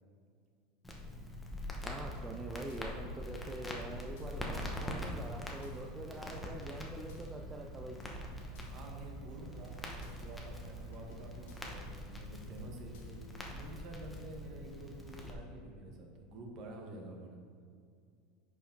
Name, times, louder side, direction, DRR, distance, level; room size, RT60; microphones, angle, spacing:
Crackle, 0.8-15.3, left 1 dB, 10° left, 0.9 m, -44 dB
sound 1, 1.6-13.3, right 3 dB, 90° left, 1.2 m, -53 dB
voice 1, 1.8-8.0, right 1 dB, 10° right, 1 dB, 0.4 m, -45 dB
sound 2, 2.1-11.9, right 2 dB, 80° right, 1.5 m, -61 dB
voice 2, 8.7-17.4, right 2 dB, 40° right, 1 dB, 1.3 m, -49 dB
10.0 x 5.0 x 3.9 m, 2.2 s
supercardioid pair, 155°, 0 cm